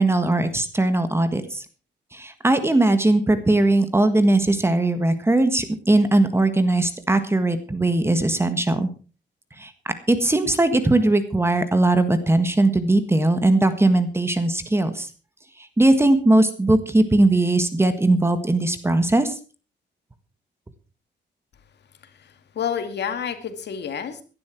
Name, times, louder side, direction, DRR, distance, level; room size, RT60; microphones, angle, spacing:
voice 1, 0.0-1.6 2.1-8.9 9.6-15.1 15.8-19.4, right 2 dB, 15° right, 10 dB, 1.6 m, -19 dB
voice 2, 22.0-24.2, left 8 dB, 65° left, 9 dB, 2.2 m, -30 dB
17.0 x 11.5 x 4.6 m, 0.35 s
wide cardioid pair, 150°, 19 cm